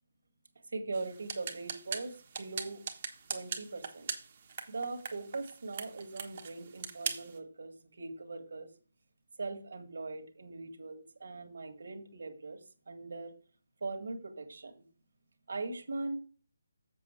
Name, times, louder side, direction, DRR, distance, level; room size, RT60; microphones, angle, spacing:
voice 1, 0.7-2.8 3.3-4.1 4.7-8.7 9.4-12.6 12.9-13.3 13.8-14.8 15.5-16.2, right 3 dB, 65° right, 5 dB, 1.8 m, -40 dB
sound 1, 0.9-7.4, right 6 dB, 40° right, 1.3 m, -42 dB
7.4 x 7.1 x 4.4 m, 0.41 s
figure-of-eight pair, 160°, 0 cm